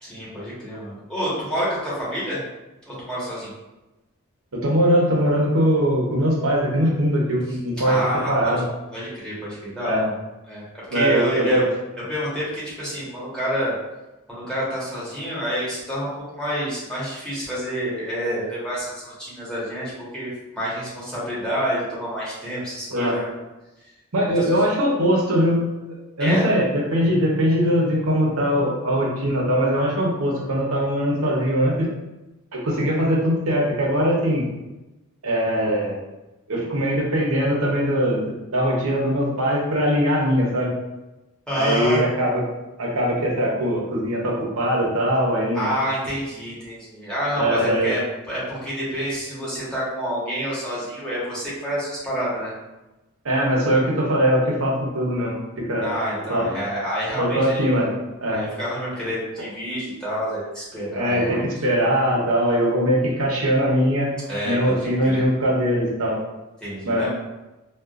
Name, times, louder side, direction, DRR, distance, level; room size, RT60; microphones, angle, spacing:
voice 1, 0.0-2.4 2.9-3.5 7.8-8.5 8.9-10.1 10.5-10.6 10.9-11.6 12.1-13.7 14.3-23.3 24.4-24.6 26.2-26.4 41.5-42.0 45.5-48.0 48.3-52.5 55.8-57.9 58.3-61.5 64.3-65.2 66.6-67.1, equal, 5° left, -9 dB, 1.2 m, -28 dB
voice 2, 4.5-8.0 8.3-8.6 9.8-10.0 10.9-11.6 22.9-23.2 24.1-25.7 26.2-31.9 32.5-34.4 35.2-36.0 36.5-40.7 41.5-42.4 42.8-45.7 47.3-47.9 53.2-55.9 56.3-56.5 57.2-57.9 58.2-58.4 60.9-64.1 64.4-66.2 66.8-67.1, equal, 80° right, -3 dB, 0.9 m, -21 dB
3.5 x 2.4 x 2.4 m, 1.0 s
head